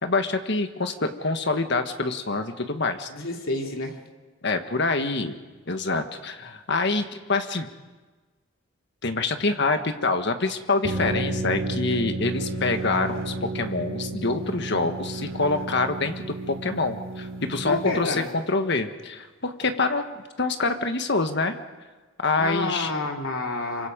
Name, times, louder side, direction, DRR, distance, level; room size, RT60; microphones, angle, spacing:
voice 1, 0.0-3.1 4.4-5.3 5.7-7.7 9.0-21.6 22.2-22.9, left 3 dB, 55° left, 7 dB, 1.5 m, -26 dB
voice 2, 3.1-4.0 17.6-18.3 22.4-23.9, left 2 dB, 90° left, 1 dB, 3.1 m, -29 dB
sound 1, 10.8-18.3, right 2 dB, 80° right, 4.5 m, -32 dB
26.5 x 24.5 x 5.2 m, 1.3 s
head